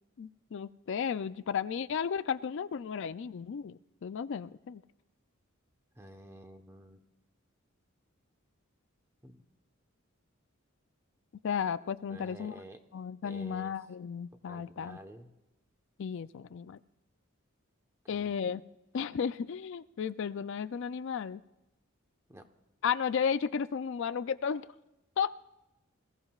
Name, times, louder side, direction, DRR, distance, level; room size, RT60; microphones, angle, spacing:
voice 1, 0.2-4.8 11.4-12.6 12.9-15.0 16.0-16.8 18.1-18.6 18.9-21.4 22.8-24.7 25.2-25.3, left 7 dB, 60° left, 13 dB, 0.4 m, -34 dB
voice 2, 6.0-7.0 9.2-9.4 12.1-12.8 13.2-13.7 14.5-15.3 18.0-18.4 22.3-22.4, right 1 dB, 15° right, 5 dB, 1.0 m, -50 dB
27.0 x 16.0 x 2.4 m, 0.97 s
head